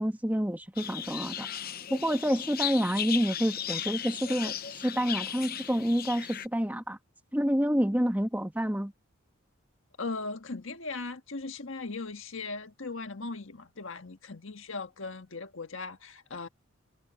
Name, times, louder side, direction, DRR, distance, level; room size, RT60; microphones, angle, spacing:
voice 1, 0.0-1.5 1.9-4.5 4.8-7.0 7.3-8.9, equal, 10° right, 1.5 m, -28 dB
sound 1, 0.8-6.5, left 9 dB, 45° left, 0.8 m, -36 dB
voice 2, 10.0-16.5, left 3 dB, 65° left, 1.6 m, -38 dB
head